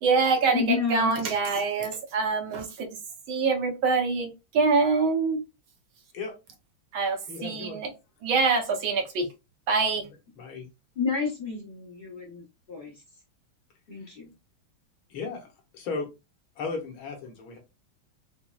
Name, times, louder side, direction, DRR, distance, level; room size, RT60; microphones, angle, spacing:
voice 1, 0.0-2.9 3.3-5.4 6.9-7.9 8.2-9.3 9.7-10.1, right 4 dB, 75° right, 1.6 m, -25 dB
voice 2, 0.5-1.4 10.9-13.0 13.9-14.3, left 5 dB, 40° left, 0.8 m, -30 dB
voice 3, 7.3-7.8 10.4-10.7 15.1-15.5 15.7-16.1 16.6-17.6, left 4 dB, 80° left, 1.8 m, -35 dB
5.8 x 2.0 x 2.3 m
omnidirectional pair, 2.2 m